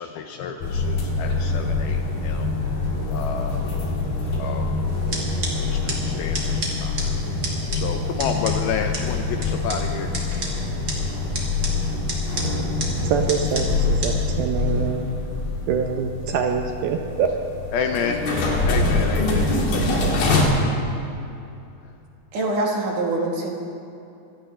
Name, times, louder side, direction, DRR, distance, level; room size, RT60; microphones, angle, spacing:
voice 1, 0.0-2.6 3.1-3.6 4.4-4.8 5.6-7.4 7.7-10.2 11.7-12.1 17.7-18.3 18.6-20.9 21.8-22.0, left 6 dB, 80° left, 5 dB, 2.3 m, -31 dB
sound 1, 0.6-20.4, left 3 dB, 60° left, 3.8 m, -25 dB
sound 2, 4.9-14.1, right 2 dB, 30° right, 2.2 m, -34 dB
voice 2, 13.0-15.2 15.7-17.3, right 7 dB, 75° right, 4 dB, 2.4 m, -25 dB
voice 3, 22.3-23.5, right 2 dB, 60° right, -1 dB, 2.7 m, -24 dB
24.0 x 17.0 x 3.3 m, 2.7 s
omnidirectional pair, 4.9 m